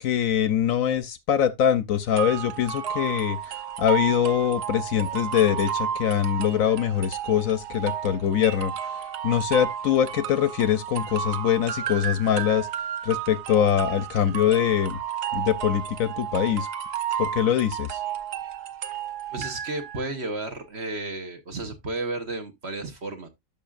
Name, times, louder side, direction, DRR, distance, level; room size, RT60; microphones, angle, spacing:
voice 1, 0.0-3.4 3.8-8.7 9.2-12.7 13.0-15.0 15.3-16.7 17.2-18.0, left 9 dB, 65° left, 1.0 m, -23 dB
sound 1, 2.2-20.1, right 9 dB, 80° right, 1.4 m, -32 dB
voice 2, 19.3-23.3, right 2 dB, 45° right, 1.3 m, -33 dB
12.0 x 5.6 x 2.4 m
omnidirectional pair, 1.7 m